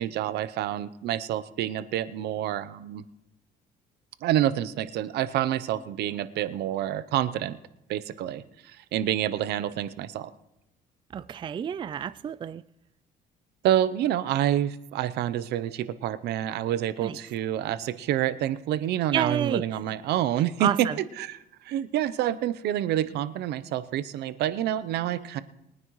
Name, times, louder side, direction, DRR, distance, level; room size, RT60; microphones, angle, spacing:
voice 1, 0.0-3.0 4.2-7.6 7.9-10.3 13.6-20.7 21.2-21.4 21.6-25.4, right 11 dB, 75° right, 0.7 m, -28 dB
voice 2, 11.1-12.6 17.0-17.2 19.1-19.6 20.6-21.0, right 9 dB, 30° right, 0.3 m, -29 dB
22.0 x 9.5 x 3.1 m
cardioid pair, 110°, 17 cm